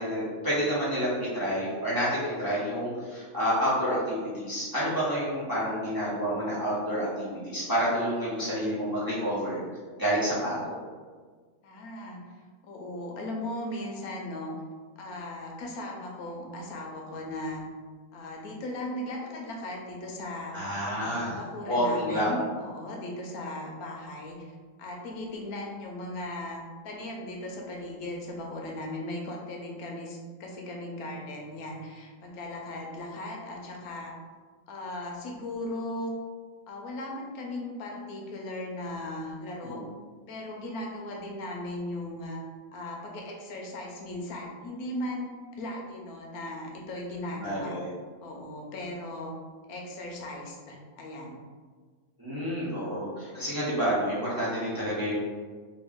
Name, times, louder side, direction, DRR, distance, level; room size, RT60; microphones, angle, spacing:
voice 1, 0.0-9.6 10.0-10.7 20.5-21.4 21.7-22.4 39.6-39.8 47.4-47.9 52.2-55.1, equal, 20° right, -10 dB, 0.7 m, -29 dB
voice 2, 11.6-12.2 12.6-14.5 15.0-17.7 18.1-20.6 21.0-24.5 24.8-34.1 34.7-36.1 36.7-39.8 40.3-42.4 42.7-45.3 45.6-47.7 48.2-49.3 49.7-51.4, left 1 dB, 85° left, 0 dB, 1.1 m, -37 dB
3.2 x 2.2 x 3.5 m, 1.5 s
omnidirectional pair, 1.5 m